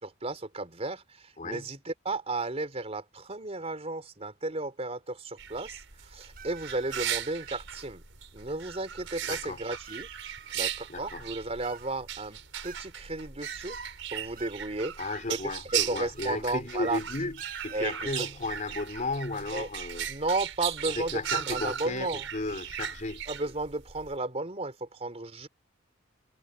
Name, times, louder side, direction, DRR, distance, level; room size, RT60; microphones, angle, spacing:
voice 1, 0.0-8.0 8.3-10.1 10.5-13.8 14.1-15.0 15.3-17.0 17.7-18.3 19.5-19.7 20.1-22.3 23.3-25.5, right 2 dB, 30° right, 3.7 m, -34 dB
voice 2, 1.4-1.7 9.3-9.6 10.9-11.3 15.0-17.4 17.6-20.1 21.0-23.2, left 2 dB, 40° left, 3.3 m, -34 dB
sound 1, 5.4-24.2, right 10 dB, 75° right, 5.6 m, -37 dB
sound 2, 6.3-7.7 8.7-8.8 9.8-11.1 11.6-12.2 12.6-13.1 13.4-14.6 14.9-15.0 16.1-16.4 16.7-16.9 17.4-18.0, right 8 dB, 50° right, 5.7 m, -48 dB
head